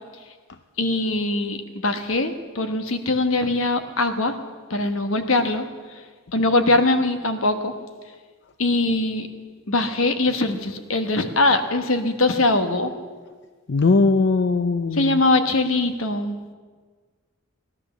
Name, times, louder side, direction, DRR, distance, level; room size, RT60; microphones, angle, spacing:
voice 1, 0.8-4.3 4.7-6.0 6.3-7.7 8.6-9.3 9.7-12.9 14.9-16.4, left 2 dB, 80° left, 8 dB, 1.3 m, -22 dB
voice 2, 13.7-15.2, left 3 dB, 55° left, 9 dB, 0.5 m, -19 dB
17.0 x 12.0 x 7.0 m, 1.5 s
head